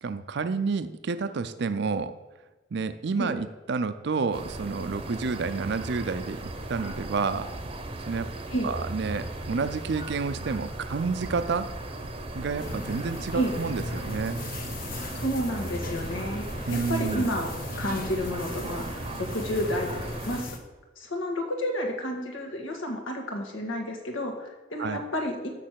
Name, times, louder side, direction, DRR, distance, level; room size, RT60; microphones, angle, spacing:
voice 1, 0.0-2.1 2.7-7.5 8.1-8.3 8.6-11.7 12.3-14.4 16.7-17.3 24.8-25.0, right 4 dB, 60° right, 11 dB, 0.5 m, -29 dB
sound 1, 4.3-20.4, right 2 dB, 30° right, 0.8 m, -37 dB
sound 2, 12.6-20.6, left 2 dB, 45° left, 1.1 m, -38 dB
voice 2, 15.1-17.5 17.8-20.6 21.0-25.5, equal, 85° left, 2 dB, 1.7 m, -31 dB
6.5 x 6.2 x 7.6 m, 1.2 s
head